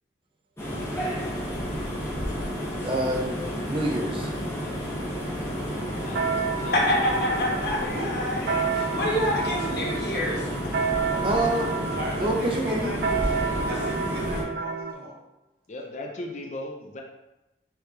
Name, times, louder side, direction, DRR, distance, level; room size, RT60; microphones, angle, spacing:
sound 1, 0.6-14.4, equal, 15° left, 0.9 m, -31 dB
voice 1, 2.8-4.3 11.2-11.7 12.2-13.2, right 1 dB, 30° right, 0 dB, 0.5 m, -27 dB
sound 2, 5.8-14.9, right 5 dB, 80° right, 0.4 m, -30 dB
voice 2, 6.0-6.8 7.7-8.0 15.7-17.0, left 1 dB, 40° left, 1 dB, 0.5 m, -38 dB
voice 3, 6.7-10.4, left 1 dB, 60° left, -4 dB, 1.3 m, -27 dB
voice 4, 7.9-8.3 8.8-9.4 11.1-11.5 12.0-13.1 13.6-15.1, equal, 55° right, -2 dB, 1.1 m, -38 dB
4.6 x 3.3 x 3.2 m, 0.97 s
head